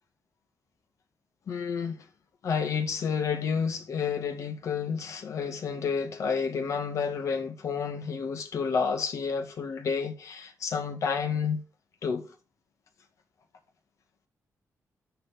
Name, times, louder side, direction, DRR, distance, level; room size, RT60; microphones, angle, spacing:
voice 1, 1.5-2.0 2.4-11.6 12.0-12.3, left 6 dB, 65° left, 1.8 m, -30 dB
12.5 x 4.9 x 3.9 m
wide cardioid pair, 150°, 6 cm